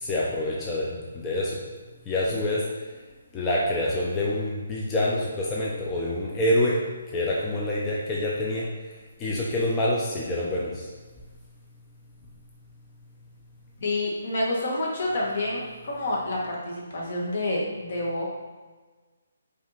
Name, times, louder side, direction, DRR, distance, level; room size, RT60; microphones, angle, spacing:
voice 1, 0.0-1.5 2.1-2.6 3.3-6.8 7.1-8.6 9.2-10.8, left 1 dB, 15° left, -5 dB, 0.4 m, -26 dB
voice 2, 13.8-18.3, left 1 dB, 50° left, -3 dB, 1.1 m, -28 dB
5.3 x 2.5 x 3.1 m, 1.3 s
hypercardioid pair, 165°, 0 cm